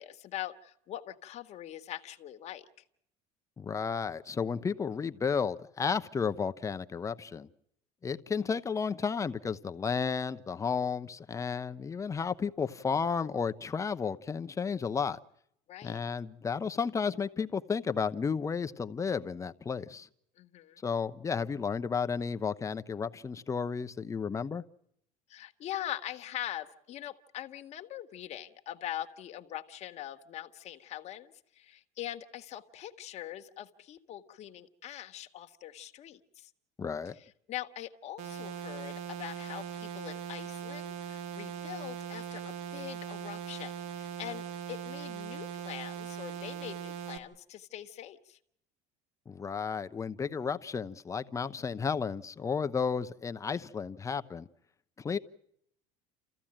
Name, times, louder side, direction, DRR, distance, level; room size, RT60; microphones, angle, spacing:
voice 1, 0.0-2.7 15.7-16.0 20.4-20.8 25.3-36.5 37.2-48.4, left 12 dB, 45° left, 7 dB, 1.6 m, -42 dB
voice 2, 3.6-7.5 8.0-15.2 15.8-20.1 20.8-24.6 36.8-37.2 49.3-54.5 55.0-55.2, left 5 dB, 20° left, 11 dB, 0.9 m, -33 dB
sound 1, 38.2-47.2, right 8 dB, 85° right, 2.6 m, -40 dB
29.0 x 15.0 x 8.8 m, 0.75 s
cardioid pair, 125°, 15 cm